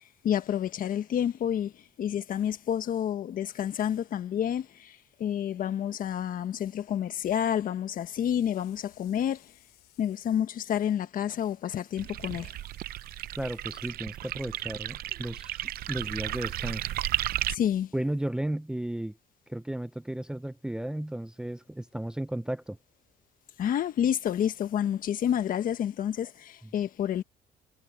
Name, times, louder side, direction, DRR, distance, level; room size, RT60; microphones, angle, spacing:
voice 1, 0.2-9.5 10.0-12.5 17.5-17.9 23.6-27.2, left 9 dB, 55° left, 1.5 m, -29 dB
sound 1, 5.0-5.1 8.4-10.3 12.2-13.9 15.6-17.7, left 18 dB, 90° left, 7.4 m, -63 dB
sound 2, 12.0-17.6, right 14 dB, 65° right, 0.6 m, -34 dB
voice 2, 13.3-15.6 15.9-16.9 17.9-19.2 19.5-22.8, right 1 dB, 5° right, 0.5 m, -34 dB
cardioid pair, 110°, 17 cm